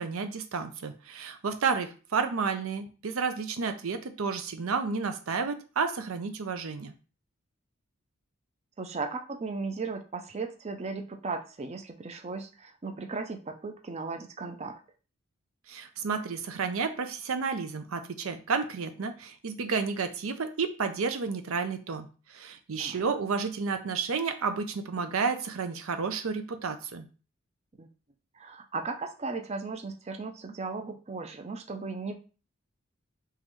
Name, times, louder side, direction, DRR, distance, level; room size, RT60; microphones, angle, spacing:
voice 1, 0.0-6.9 15.7-27.1, right 5 dB, 75° right, 8 dB, 0.6 m, -31 dB
voice 2, 8.8-14.8 22.8-23.1 27.8-27.9 28.3-32.1, right 4 dB, 30° right, 5 dB, 0.5 m, -36 dB
3.8 x 3.0 x 3.1 m, 0.35 s
head